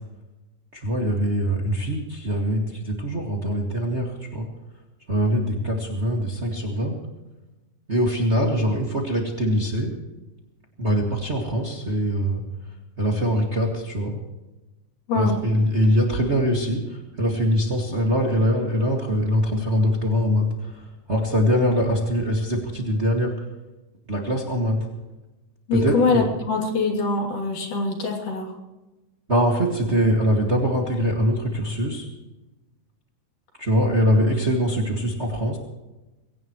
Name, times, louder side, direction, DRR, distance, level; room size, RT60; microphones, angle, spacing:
voice 1, 0.7-4.5 5.1-7.0 7.9-9.9 10.8-12.4 13.0-14.2 15.1-23.3 24.1-24.8 25.7-26.3 29.3-32.1 33.6-35.6, equal, 25° right, 0 dB, 1.9 m, -23 dB
voice 2, 25.7-28.5, left 4 dB, 70° left, 1 dB, 4.4 m, -23 dB
22.5 x 17.5 x 3.1 m, 1.1 s
omnidirectional pair, 3.8 m